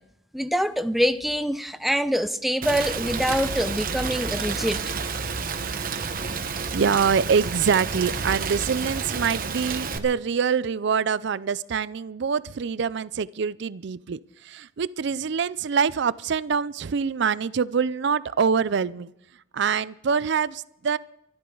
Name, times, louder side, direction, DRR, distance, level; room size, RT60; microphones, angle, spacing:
voice 1, 0.3-4.8, equal, ahead, 11 dB, 0.6 m, -25 dB
Rain, 2.6-10.0, right 5 dB, 50° right, 1.1 m, -30 dB
voice 2, 6.7-19.1 19.5-21.0, right 6 dB, 65° right, 18 dB, 0.5 m, -25 dB
24.5 x 12.5 x 3.9 m, 0.78 s
head